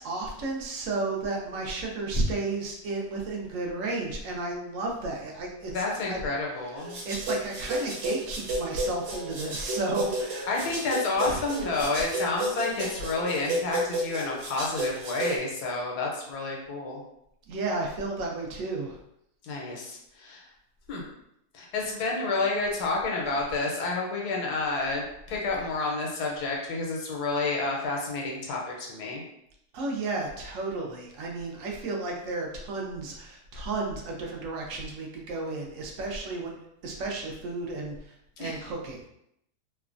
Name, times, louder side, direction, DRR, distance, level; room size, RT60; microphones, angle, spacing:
voice 1, 0.0-6.2 6.7-10.4 11.3-11.4 17.5-19.0 29.7-36.5 36.8-39.1, right 2 dB, 65° right, -1 dB, 0.9 m, -33 dB
voice 2, 5.7-7.0 10.5-17.0 19.4-20.4 20.9-21.0 21.5-29.2 38.4-38.6, left 3 dB, 80° left, -1 dB, 1.2 m, -30 dB
sound 1, 6.8-15.4, right 1 dB, 90° right, 1.3 m, -32 dB
3.0 x 2.2 x 2.4 m, 0.78 s
omnidirectional pair, 1.7 m